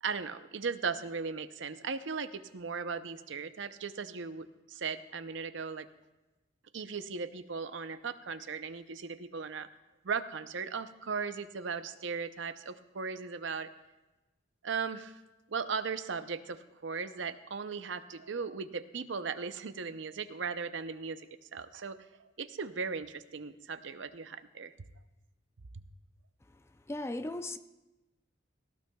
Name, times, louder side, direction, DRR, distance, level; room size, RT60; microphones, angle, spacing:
voice 1, 0.0-5.9 6.7-9.7 10.0-13.7 14.6-15.2 15.5-24.7 25.7-25.8, right 5 dB, 65° right, 0.6 m, -37 dB
voice 2, 26.9-27.6, left 1 dB, 15° left, 0.4 m, -36 dB
18.0 x 16.5 x 2.3 m
head